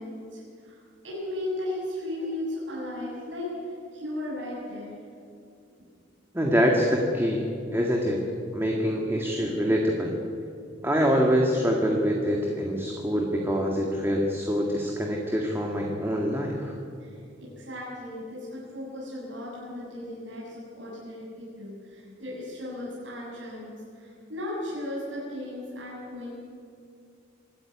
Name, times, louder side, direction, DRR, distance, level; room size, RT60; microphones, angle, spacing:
voice 1, 0.0-5.0 17.0-23.7 24.0-26.3, left 1 dB, 85° right, -7 dB, 7.6 m, -36 dB
voice 2, 6.3-7.4 7.7-8.2 8.5-10.1 10.8-16.7, equal, 15° right, 0 dB, 2.0 m, -25 dB
25.5 x 13.5 x 9.5 m, 2.4 s
head